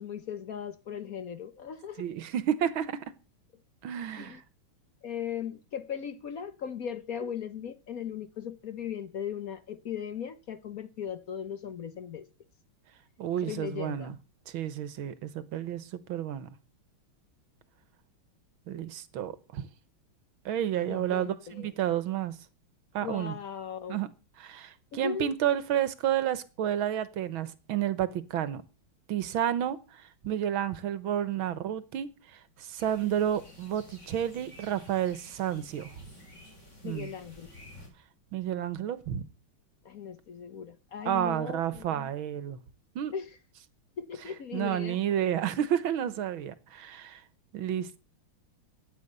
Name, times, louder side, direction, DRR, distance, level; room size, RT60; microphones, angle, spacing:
voice 1, 0.0-2.1 4.1-4.4 5.0-12.2 13.4-14.2 20.9-21.7 23.0-24.0 24.9-25.3 36.8-37.5 39.8-42.1 43.1-43.4 44.0-45.0, left 8 dB, 55° left, 1.2 m, -38 dB
voice 2, 2.0-3.1 3.8-4.4 13.2-14.2 14.5-16.5 18.7-19.7 20.5-22.4 22.9-23.3 23.9-24.1 24.4-28.6 29.1-35.9 36.8-37.1 38.3-39.2 41.1-42.6 43.0-43.1 44.5-47.2 47.5-48.0, right 10 dB, 80° right, 1.9 m, -31 dB
sound 1, 32.8-37.9, left 1 dB, 35° left, 5.1 m, -52 dB
13.5 x 9.4 x 6.8 m
omnidirectional pair, 2.2 m